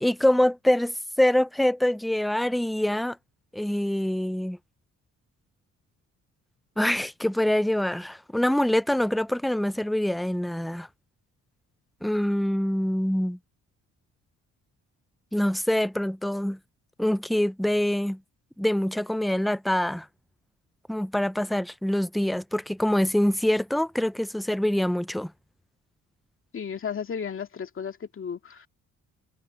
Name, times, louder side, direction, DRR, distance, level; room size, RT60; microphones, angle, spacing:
voice 1, 0.0-3.2 3.5-4.6 6.8-10.9 12.0-13.4 15.3-16.6 17.0-18.2 18.6-20.1 20.9-25.3, left 1 dB, ahead, 0.6 m, -25 dB
voice 2, 26.5-28.7, left 7 dB, 45° left, 2.3 m, -34 dB
cardioid pair, 90°, 30 cm